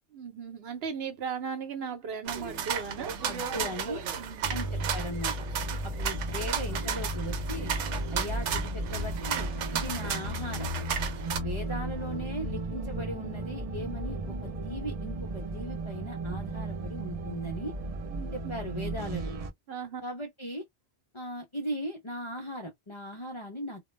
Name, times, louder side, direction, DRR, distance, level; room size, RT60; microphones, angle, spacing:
voice 1, 0.1-3.1 4.2-4.6 18.1-18.5 19.7-20.0, right 6 dB, 65° right, 0.9 m, -37 dB
sound 1, 2.2-11.4, right 7 dB, 90° right, 0.9 m, -34 dB
voice 2, 3.2-4.1 4.5-5.5 5.8-7.7 8.1-10.7 11.4-17.7 18.3-19.3 20.0-20.6 21.1-23.8, equal, 45° left, 0.4 m, -38 dB
sound 2, 4.4-19.5, right 1 dB, 45° right, 0.5 m, -35 dB
2.2 x 2.0 x 3.1 m
omnidirectional pair, 1.2 m